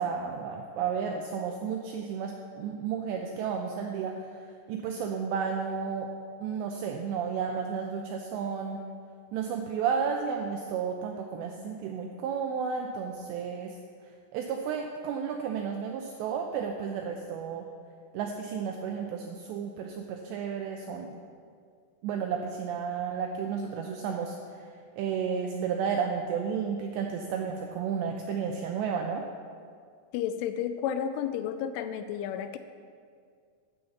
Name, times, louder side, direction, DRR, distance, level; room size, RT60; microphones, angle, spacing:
voice 1, 0.0-4.2 4.7-6.1 6.4-8.8 9.3-13.7 14.3-17.7 18.1-21.2 22.0-24.4 25.0-29.2, right 6 dB, 85° right, 2 dB, 2.5 m, -32 dB
voice 2, 30.1-32.6, left 9 dB, 85° left, 10 dB, 2.9 m, -32 dB
12.0 x 5.6 x 7.1 m, 2.1 s
omnidirectional pair, 5.7 m